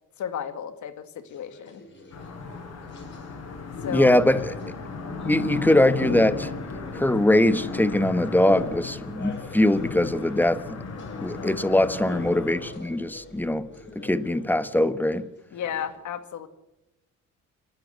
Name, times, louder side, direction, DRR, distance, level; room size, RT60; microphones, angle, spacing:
voice 1, 0.2-1.8 3.8-4.2 11.4-11.8 15.5-16.5, left 8 dB, 70° left, 2.1 m, -34 dB
sound 1, 1.3-16.0, left 3 dB, 40° left, 5.8 m, -46 dB
sound 2, 2.1-12.7, left 4 dB, 55° left, 5.6 m, -35 dB
voice 2, 3.9-4.5 5.2-6.5 6.9-10.6 11.2-13.7 13.9-15.3, left 1 dB, 5° left, 1.2 m, -22 dB
29.0 x 11.5 x 8.2 m
cardioid pair, 90°, 30 cm